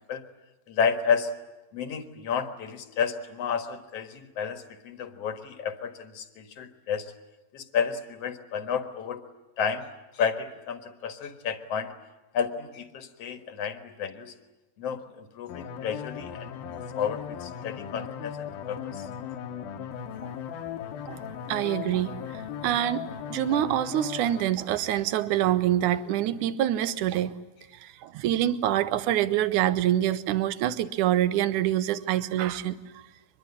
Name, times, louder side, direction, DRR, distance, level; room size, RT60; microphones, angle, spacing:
voice 1, 0.7-1.3 1.7-7.1 7.5-9.2 9.6-9.9 10.1-11.9 12.3-14.3 14.8-19.1, left 6 dB, 50° left, 9 dB, 2.3 m, -31 dB
sound 1, 15.5-24.4, left 8 dB, 75° left, 3.0 m, -37 dB
voice 2, 21.1-22.2 22.6-23.0 23.3-27.4 27.8-33.1, right 12 dB, 65° right, 14 dB, 2.2 m, -26 dB
24.0 x 22.0 x 9.9 m, 1.1 s
omnidirectional pair, 4.3 m